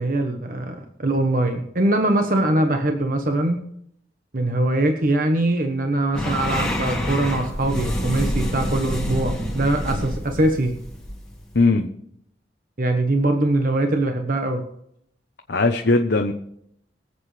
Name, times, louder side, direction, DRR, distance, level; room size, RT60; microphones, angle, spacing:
voice 1, 0.0-3.6 4.3-10.7 12.8-14.6, right 1 dB, 50° right, 5 dB, 1.2 m, -22 dB
sound 1, 6.1-11.7, equal, 5° left, 1.8 m, -27 dB
voice 2, 11.5-11.9 15.5-16.3, left 3 dB, 65° left, 4 dB, 0.9 m, -19 dB
23.5 x 8.0 x 3.3 m, 0.71 s
head